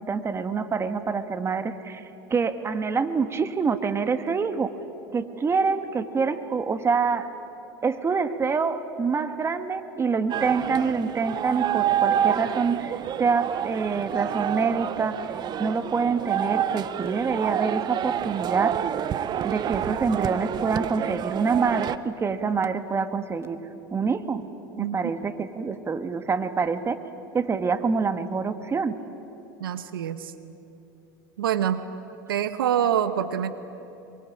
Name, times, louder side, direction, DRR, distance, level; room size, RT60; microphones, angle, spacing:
voice 1, 0.1-4.7 5.1-7.3 7.8-15.3 15.6-18.8 19.4-23.6 23.9-24.4 24.8-27.0 27.3-29.0, right 5 dB, 20° right, 10 dB, 1.6 m, -26 dB
sound 1, 10.3-22.0, right 9 dB, 40° right, 1.0 m, -28 dB
voice 2, 24.8-25.1 29.6-30.3 31.4-31.8 32.3-33.5, right 9 dB, 80° right, 11 dB, 1.1 m, -26 dB
25.5 x 23.5 x 8.8 m, 3.0 s
hypercardioid pair, 90°, 12 cm